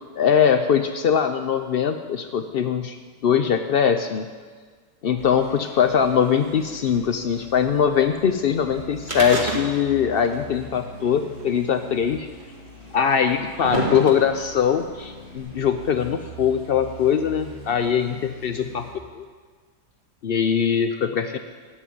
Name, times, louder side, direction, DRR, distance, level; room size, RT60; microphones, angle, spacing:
voice 1, 0.2-3.0 3.2-4.3 5.0-12.3 12.9-18.9 19.1-19.2 20.2-21.4, left 7 dB, 75° left, 8 dB, 0.5 m, -21 dB
sound 1, 5.2-18.9, right 1 dB, 30° left, 3.8 m, -43 dB
sound 2, 9.0-10.1 10.3-10.4 11.4-11.5 12.4-12.5 13.2-14.5 15.4-15.5, right 2 dB, 25° right, 2.2 m, -28 dB
13.5 x 8.5 x 9.4 m, 1.5 s
omnidirectional pair, 1.8 m